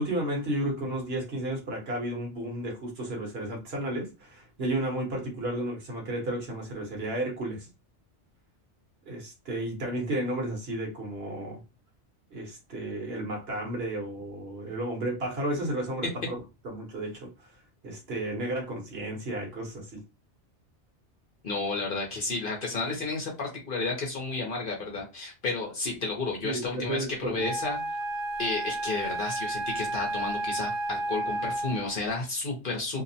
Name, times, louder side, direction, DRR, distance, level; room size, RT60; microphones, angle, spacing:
voice 1, 0.0-7.7 9.0-11.6 12.3-16.4 16.6-17.5 17.8-20.0 26.4-27.5, right 1 dB, 60° right, 1.1 m, -33 dB
voice 2, 21.4-27.8 28.4-33.0, left 3 dB, 50° left, 0.8 m, -32 dB
Wind instrument woodwind instrument, 27.4-32.0, right 1 dB, ahead, 0.5 m, -32 dB
2.7 x 2.0 x 2.6 m
omnidirectional pair, 1.2 m